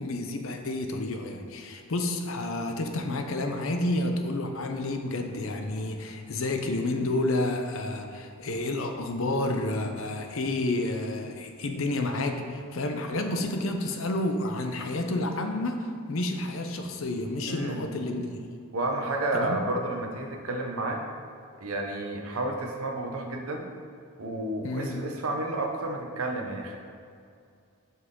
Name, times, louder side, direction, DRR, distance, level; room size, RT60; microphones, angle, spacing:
voice 1, 0.0-18.4 19.3-19.6 24.6-25.0, left 2 dB, 65° left, 5 dB, 0.6 m, -30 dB
voice 2, 17.5-17.9 18.7-21.0 21.6-23.7 24.2-26.8, right 2 dB, 80° right, 2 dB, 0.8 m, -31 dB
6.0 x 5.6 x 3.8 m, 2.3 s
head